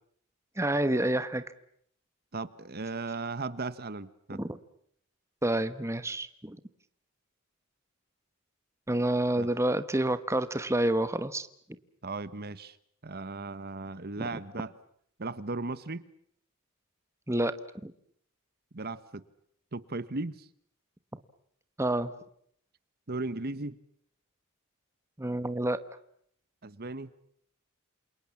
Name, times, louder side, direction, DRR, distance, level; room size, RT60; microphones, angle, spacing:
voice 1, 0.6-1.4 4.3-4.6 5.4-6.6 8.9-11.5 14.2-14.3 17.3-17.5 17.8-17.9 21.8-22.1 25.2-25.8, right 1 dB, 15° right, 12 dB, 1.2 m, -28 dB
voice 2, 2.3-4.4 9.3-9.5 12.0-12.8 13.0-14.7 15.2-16.0 18.7-19.2 19.7-20.5 23.1-23.8 26.6-27.1, right 3 dB, 50° right, 15 dB, 1.2 m, -36 dB
28.0 x 28.0 x 7.2 m, 0.67 s
head